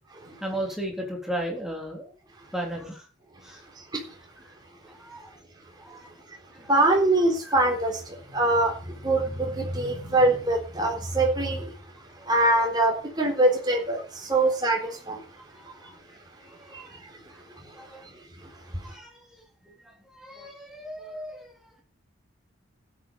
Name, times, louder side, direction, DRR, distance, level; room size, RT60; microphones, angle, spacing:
voice 1, 0.4-2.1 2.5-3.1 3.4-3.6 4.9-5.3 5.8-6.0 7.4-7.5 12.2-12.3 15.5-15.9 16.5-17.0 17.3-17.4 17.7-18.1 18.8-19.3 19.8-21.8, right 1 dB, ahead, 3.4 m, -36 dB
voice 2, 6.7-11.7 12.2-15.2 15.8-15.9 16.7-16.8, right 2 dB, 20° right, 3.8 m, -24 dB
13.0 x 8.7 x 6.9 m
head